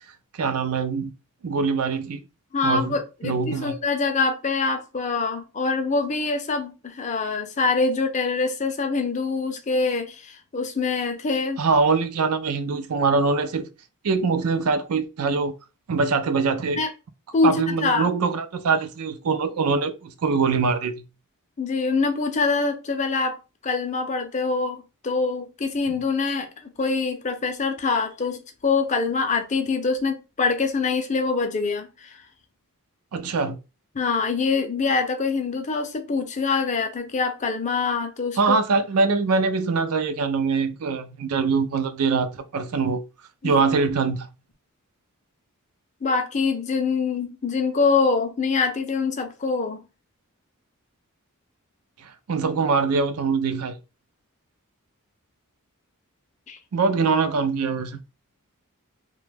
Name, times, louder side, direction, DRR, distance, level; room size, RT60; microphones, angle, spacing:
voice 1, 0.4-1.1 1.4-2.2 2.6-3.0 3.2-3.7 11.6-13.7 14.0-15.5 15.9-16.8 17.4-21.0 33.1-33.6 38.4-43.0 43.4-44.3 52.0-53.8 56.7-58.0, right 4 dB, 80° right, 0.5 m, -23 dB
voice 2, 2.5-11.6 16.7-16.9 17.3-18.1 21.6-23.4 23.6-32.2 33.9-38.6 43.4-43.6 46.0-49.8 56.5-56.6, left 4 dB, 35° left, 0.5 m, -24 dB
2.9 x 2.2 x 3.3 m
head